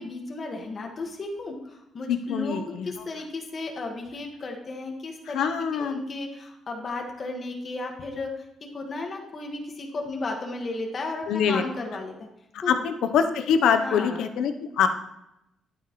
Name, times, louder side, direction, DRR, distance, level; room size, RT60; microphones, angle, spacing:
voice 1, 0.0-12.3 12.6-12.8 13.8-14.3, left 3 dB, 40° left, 1 dB, 1.6 m, -34 dB
voice 2, 2.1-2.9 5.3-6.0 11.3-11.6 12.5-14.9, left 7 dB, 80° left, 8 dB, 0.8 m, -24 dB
11.0 x 9.2 x 3.1 m, 0.84 s
cardioid pair, 90°, 0 cm